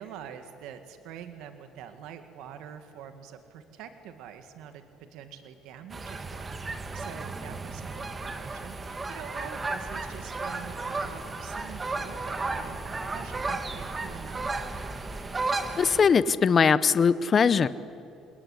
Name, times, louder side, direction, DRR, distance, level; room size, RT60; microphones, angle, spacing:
voice 1, 0.0-14.7, right 9 dB, 80° right, 8 dB, 1.9 m, -45 dB
sound 1, 5.9-16.0, right 3 dB, 25° right, 2.0 m, -34 dB
voice 2, 15.8-17.7, left 6 dB, 40° left, 16 dB, 0.9 m, -21 dB
27.0 x 20.0 x 9.9 m, 2.6 s
cardioid pair, 105°, 0 cm